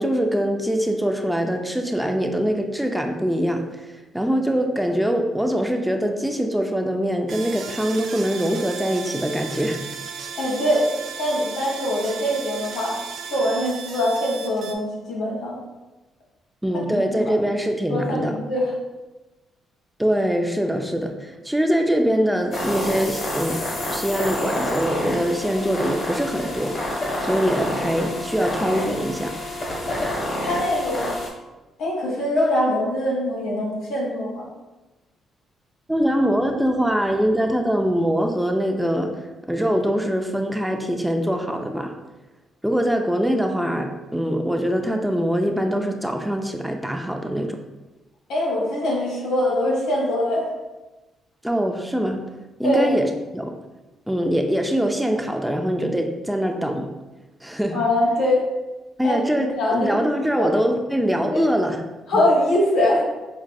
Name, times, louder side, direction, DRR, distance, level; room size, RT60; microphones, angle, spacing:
voice 1, 0.0-9.8 16.6-18.4 20.0-23.6 23.9-26.8 27.2-29.4 35.9-41.9 42.6-47.6 51.4-52.2 52.6-53.6 54.1-56.9 57.4-57.8 59.0-61.8 62.1-62.2, equal, 5° right, 4 dB, 0.3 m, -23 dB
sound 1, 7.3-14.7, right 6 dB, 75° right, 0.3 m, -35 dB
voice 2, 10.3-10.8 11.2-13.0 13.3-15.6 16.9-17.3 17.9-18.6 30.4-31.1 31.8-34.4 48.3-50.5 52.6-52.9 57.7-58.4 59.0-60.0 60.4-60.5 61.3-61.4 62.1-63.0, left 1 dB, 90° left, -5 dB, 1.4 m, -23 dB
sound 2, 22.5-31.3, left 1 dB, 45° left, 1.2 m, -28 dB
5.3 x 2.4 x 2.2 m, 1.1 s
cardioid pair, 90°, 0 cm